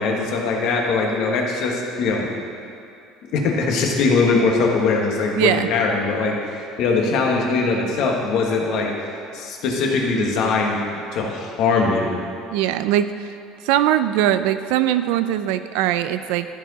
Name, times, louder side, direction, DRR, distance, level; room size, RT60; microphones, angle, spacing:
voice 1, 0.0-2.3 3.3-6.3 6.8-8.9 9.3-10.8 11.1-12.2, left 4 dB, 60° left, 0 dB, 1.4 m, -21 dB
voice 2, 5.4-5.7 12.5-13.1 13.6-16.5, right 11 dB, 85° right, 11 dB, 0.4 m, -20 dB
13.5 x 4.7 x 4.1 m, 2.5 s
cardioid pair, 150°, 0 cm